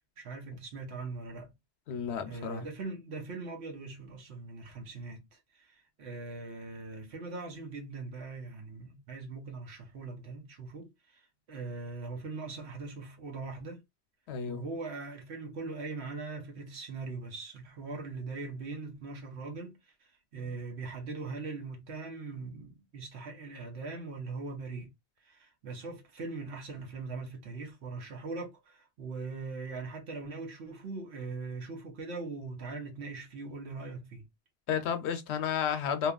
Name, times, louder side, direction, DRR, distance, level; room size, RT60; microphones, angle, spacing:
voice 1, 0.2-1.5 2.2-13.8 14.5-24.9 25.2-34.3, right 3 dB, 80° right, 1.2 m, -41 dB
voice 2, 1.9-2.6 14.3-14.6 34.7-36.1, left 7 dB, 85° left, 0.9 m, -32 dB
2.9 x 2.3 x 2.3 m
omnidirectional pair, 1.1 m